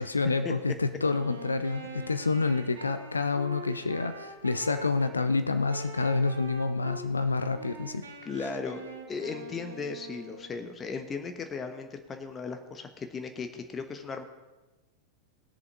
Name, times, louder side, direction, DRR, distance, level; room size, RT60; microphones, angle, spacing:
voice 1, 0.0-8.1, left 3 dB, 80° left, 11 dB, 0.6 m, -28 dB
Wind instrument woodwind instrument, 1.0-5.2 5.7-7.1 7.5-10.7, right 1 dB, 70° right, 1.5 m, -44 dB
voice 2, 8.2-14.2, left 4 dB, 20° left, 6 dB, 1.1 m, -36 dB
19.0 x 6.9 x 4.8 m, 1.1 s
figure-of-eight pair, 90°, 0 cm